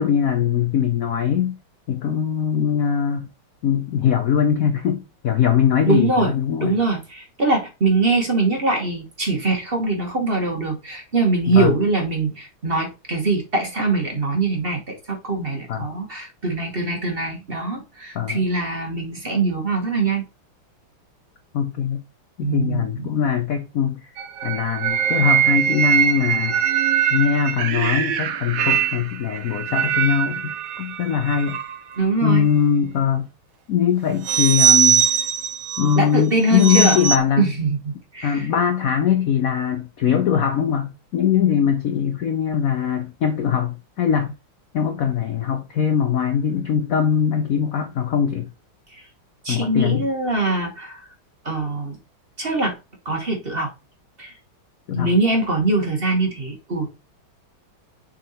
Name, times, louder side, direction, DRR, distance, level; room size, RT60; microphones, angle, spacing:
voice 1, 0.0-1.5 1.9-3.3 3.6-6.8 11.5-11.8 15.7-15.9 18.1-18.5 21.5-22.0 22.4-26.6 27.1-31.6 32.2-33.3 33.7-35.1 35.8-37.5 38.2-44.3 44.7-48.5 49.5-50.1 54.9-55.1, left 8 dB, 80° left, 0.7 m, -21 dB
voice 2, 5.9-6.3 6.6-20.2 22.4-23.1 32.0-32.5 36.0-37.0 37.4-38.5 48.9-49.0 49.4-51.0 51.4-52.0 52.4-52.8 53.0-53.7 54.2-54.3 54.9-56.9, right 3 dB, 35° right, 1.2 m, -22 dB
sound 1, 24.2-32.0 34.2-36.0 36.5-37.2, right 8 dB, 70° right, 0.8 m, -21 dB
6.8 x 3.8 x 4.2 m
omnidirectional pair, 2.3 m